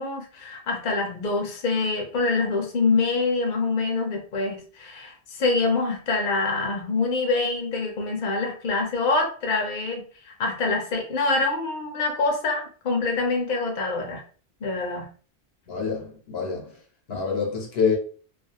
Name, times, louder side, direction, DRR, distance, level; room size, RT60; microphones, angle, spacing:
voice 1, 0.0-14.2 14.6-15.1, left 3 dB, 55° left, 0.8 m, -25 dB
voice 2, 15.7-16.7 17.1-18.0, left 6 dB, 85° left, 1.1 m, -26 dB
2.4 x 2.4 x 2.8 m
omnidirectional pair, 1.0 m